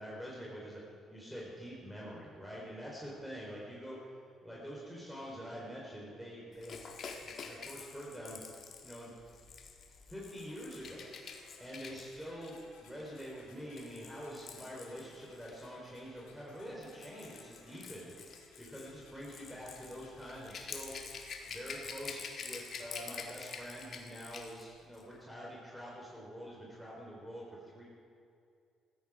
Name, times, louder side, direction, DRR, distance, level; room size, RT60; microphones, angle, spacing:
voice 1, 0.0-6.8 7.2-8.4 8.8-9.1 10.1-11.1 11.6-20.9 21.5-27.8, equal, ahead, -5 dB, 3.8 m, -46 dB
Rattle / Rattle (instrument), 6.6-15.6 16.6-24.7 24.9-25.1, left 5 dB, 55° left, 1.7 m, -48 dB
sound 1, 10.4-25.3, left 3 dB, 80° left, 2.2 m, -62 dB
15.5 x 13.5 x 4.8 m, 2.4 s
hypercardioid pair, 55°, 0 cm